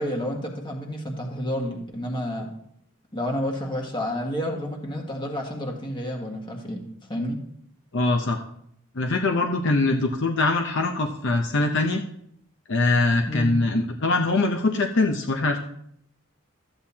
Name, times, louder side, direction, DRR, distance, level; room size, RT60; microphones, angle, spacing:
voice 1, 0.0-2.5 3.1-6.8 7.1-7.4 13.2-13.5, equal, 20° left, 1 dB, 1.7 m, -30 dB
voice 2, 7.9-8.4 9.0-12.0 12.7-15.6, left 2 dB, 55° left, 3 dB, 0.7 m, -23 dB
13.5 x 8.8 x 2.8 m, 0.71 s
head